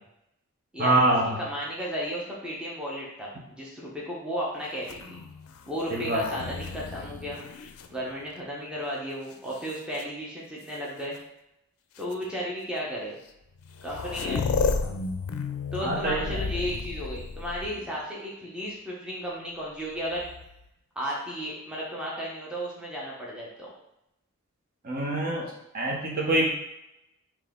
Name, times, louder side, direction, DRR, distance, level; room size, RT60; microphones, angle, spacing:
voice 1, 0.8-1.3 5.9-6.2 15.8-16.4 24.8-26.5, right 2 dB, 40° right, -2 dB, 0.8 m, -25 dB
voice 2, 1.4-5.2 5.7-7.4 7.9-11.2 12.0-13.2 13.8-14.4 15.7-20.3 21.0-23.7, equal, 5° right, -5 dB, 0.7 m, -34 dB
sound 1, 4.8-8.6 9.3-10.0 11.1-11.2 12.0-12.1 13.3-13.4 13.6-18.0 20.0-20.7, left 4 dB, 85° left, 0.4 m, -33 dB
4.0 x 2.9 x 3.6 m, 0.84 s
head